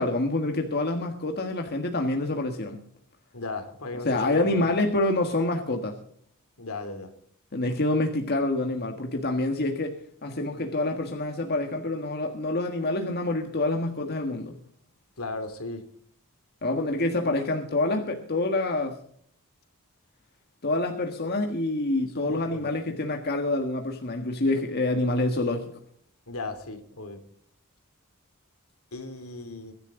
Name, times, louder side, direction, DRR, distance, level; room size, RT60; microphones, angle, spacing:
voice 1, 0.0-2.8 4.1-6.0 7.5-10.0 10.2-14.5 16.6-19.0 20.6-25.7, left 2 dB, 45° left, 1.6 m, -27 dB
voice 2, 3.3-4.7 6.6-7.1 15.2-15.8 22.0-22.8 26.3-27.2 28.9-29.7, left 3 dB, 70° left, 2.9 m, -37 dB
23.5 x 11.0 x 3.8 m
head